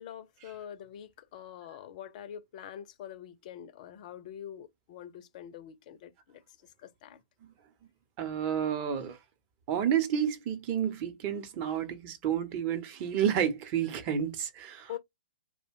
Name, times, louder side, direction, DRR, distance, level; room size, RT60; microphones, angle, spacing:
voice 1, 0.0-6.4 6.8-7.2 14.9-15.0, left 10 dB, 45° left, 0.4 m, -45 dB
voice 2, 8.2-9.2 9.7-15.0, right 9 dB, 35° right, 0.7 m, -30 dB
2.4 x 2.1 x 3.5 m
hypercardioid pair, 125°, 5 cm